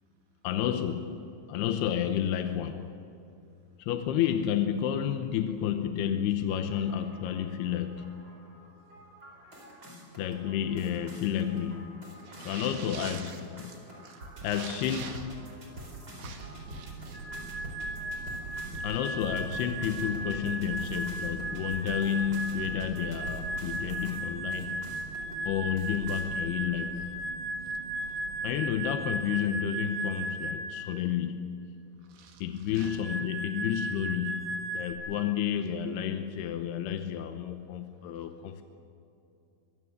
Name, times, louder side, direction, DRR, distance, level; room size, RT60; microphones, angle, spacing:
voice 1, 0.4-1.1 1.5-2.9 3.8-8.2 10.2-12.1 12.4-13.8 14.4-15.4 18.8-24.9 25.5-27.0 28.4-31.5 32.4-38.6, left 9 dB, 75° left, 7 dB, 2.7 m, -31 dB
sound 1, 6.5-24.2 24.5-25.3 25.8-26.2, right 1 dB, 20° right, 4.6 m, -46 dB
voice 2, 12.2-13.4 13.6-15.2 15.8-15.9 16.2-17.2 32.1-32.4 32.8-32.9, right 6 dB, 85° right, 2 dB, 4.9 m, -45 dB
sound 2, 16.4-29.0, right 5 dB, 65° right, 3.6 m, -45 dB
sound 3, 17.1-30.8 32.7-34.9, right 2 dB, 45° left, 3.4 m, -36 dB
24.0 x 23.5 x 6.7 m, 2.7 s
omnidirectional pair, 5.4 m